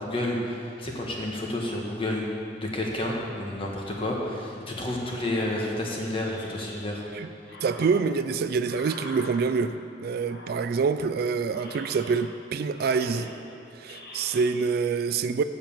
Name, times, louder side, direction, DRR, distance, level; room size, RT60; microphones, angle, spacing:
voice 1, 0.0-2.3 2.6-7.0, left 1 dB, 30° left, -1 dB, 1.5 m, -30 dB
sound 1, 5.0-7.1 7.4-9.8 10.2-11.1 11.5-12.5 12.7-14.5, left 2 dB, 65° left, 1.3 m, -44 dB
voice 2, 7.6-13.3 13.7-15.4, right 5 dB, 60° right, 11 dB, 0.3 m, -26 dB
7.6 x 7.2 x 7.1 m, 2.4 s
head